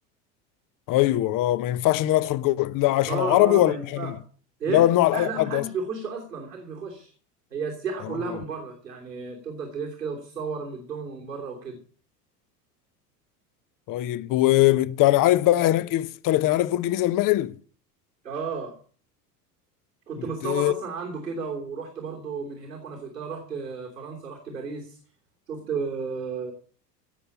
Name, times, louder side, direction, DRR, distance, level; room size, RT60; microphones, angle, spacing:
voice 1, 0.9-4.1 4.7-5.6 8.0-8.4 13.9-17.5 20.4-20.7, left 15 dB, 40° left, 1.0 m, -21 dB
voice 2, 3.1-4.1 4.6-7.1 7.5-11.8 18.2-18.8 20.1-25.0 25.5-26.5, right 5 dB, 90° right, 3.2 m, -33 dB
17.0 x 6.8 x 8.2 m
hypercardioid pair, 75°, 47 cm